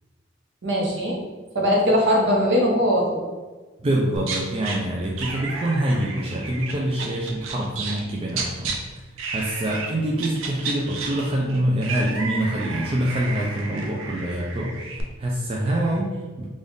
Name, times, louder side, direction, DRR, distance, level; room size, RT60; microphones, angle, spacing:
voice 1, 0.6-1.2 1.5-3.3, equal, 65° right, -2 dB, 0.9 m, -20 dB
voice 2, 3.8-8.7 9.3-16.4, right 1 dB, 30° right, -3 dB, 0.4 m, -25 dB
sound 1, 4.2-4.8 5.2-8.0 8.3-8.8 9.2-9.9 10.2-15.0, right 4 dB, 85° right, 0.6 m, -32 dB
3.4 x 2.4 x 3.9 m, 1.3 s
head